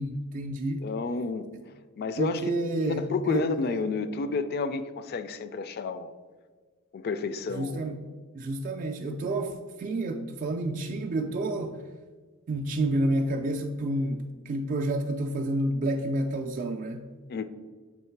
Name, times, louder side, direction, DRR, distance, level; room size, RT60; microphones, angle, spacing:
voice 1, 0.0-0.8 2.2-3.8 7.5-8.0 8.3-11.8 12.5-17.1, right 1 dB, 40° right, 0.3 m, -29 dB
voice 2, 0.8-1.5 2.0-2.5 2.8-6.1 6.9-7.8 17.3-17.4, left 4 dB, 45° left, 0.3 m, -30 dB
7.3 x 3.1 x 4.5 m
head